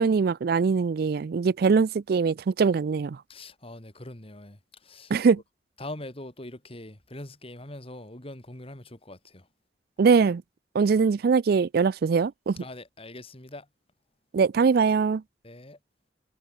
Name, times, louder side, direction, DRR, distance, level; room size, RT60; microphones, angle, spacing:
voice 1, 0.0-3.2 5.1-5.4 10.0-10.4 10.7-12.6 14.3-15.2, right 5 dB, 60° right, 0.4 m, -22 dB
voice 2, 3.3-5.1 5.8-9.5 12.6-13.7 15.4-15.8, left 1 dB, 35° left, 3.3 m, -42 dB
head